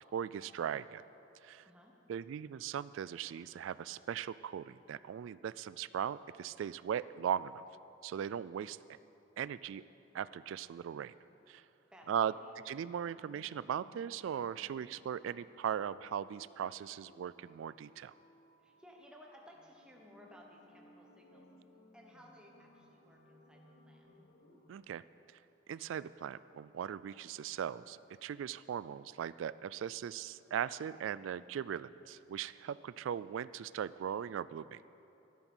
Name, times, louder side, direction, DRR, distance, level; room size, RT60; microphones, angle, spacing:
voice 1, 0.1-1.0 1.4-1.7 2.1-7.6 8.0-8.8 9.4-9.8 10.1-11.1 11.5-11.6 12.1-12.3 12.6-18.1 24.7-25.0 25.7-34.8, right 8 dB, 85° right, 18 dB, 0.3 m, -39 dB
voice 2, 1.6-1.9 11.9-12.6 18.6-21.5 21.9-23.6 23.9-24.1, equal, 5° right, -1 dB, 1.1 m, -58 dB
sound 1, 13.0-24.7, equal, 75° left, 1.9 m, -63 dB
12.5 x 12.0 x 6.2 m, 2.9 s
head